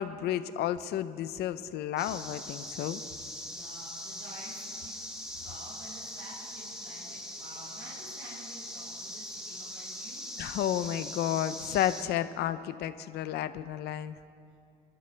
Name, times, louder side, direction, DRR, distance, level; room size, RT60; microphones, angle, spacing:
voice 1, 0.0-3.0 10.4-14.2, left 11 dB, 75° left, 12 dB, 0.7 m, -32 dB
sound 1, 2.0-12.0, left 1 dB, 5° right, 2.0 m, -41 dB
voice 2, 3.5-5.0 5.4-10.2, right 2 dB, 80° right, -7 dB, 4.0 m, -50 dB
28.5 x 12.0 x 3.4 m, 2.5 s
cardioid pair, 110°, 17 cm